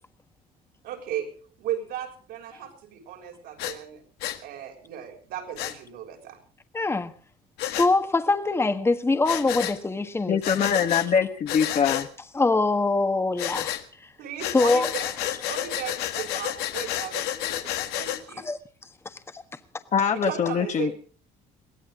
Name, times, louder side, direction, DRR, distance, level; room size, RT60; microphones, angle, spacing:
voice 1, 0.8-1.3 1.6-4.0 4.4-6.4 14.2-14.8 15.5-18.5 20.1-20.9, right 10 dB, 80° right, 6.4 m, -36 dB
Breathing, 3.6-3.8 4.2-4.4 5.6-5.7 7.6-7.9 9.2-9.8 10.4-11.1 11.5-12.1 13.4-13.8 14.4-18.2, left 12 dB, 85° left, 1.8 m, -30 dB
voice 2, 6.7-7.1 7.6-10.4 12.3-13.8 14.5-14.9 18.4-18.6 19.0-19.4, left 3 dB, 15° left, 1.4 m, -23 dB
voice 3, 10.3-12.1 19.9-20.9, left 7 dB, 45° left, 1.7 m, -23 dB
22.5 x 17.0 x 3.8 m
cardioid pair, 110°, 16 cm